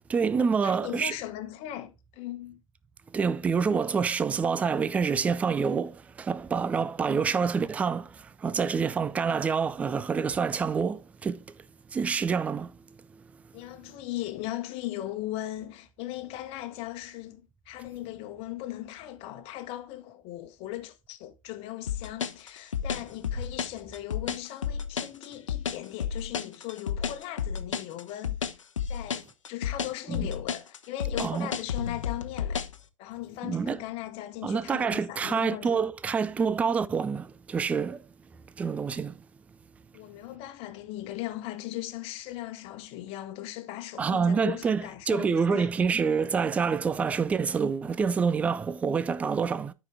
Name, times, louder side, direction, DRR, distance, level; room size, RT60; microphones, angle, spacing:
voice 1, 0.1-1.1 3.1-11.4 11.9-12.8 30.1-30.3 31.2-31.5 33.4-33.8 34.4-38.0 38.6-39.2 44.0-49.7, right 5 dB, 10° right, 0.3 m, -27 dB
voice 2, 0.6-2.6 13.5-28.4 28.9-32.6 33.0-35.8 39.9-45.7, left 14 dB, 35° left, 1.3 m, -38 dB
sound 1, 21.9-32.8, left 7 dB, 70° left, 0.9 m, -31 dB
12.0 x 5.1 x 3.5 m
figure-of-eight pair, 100°, 17 cm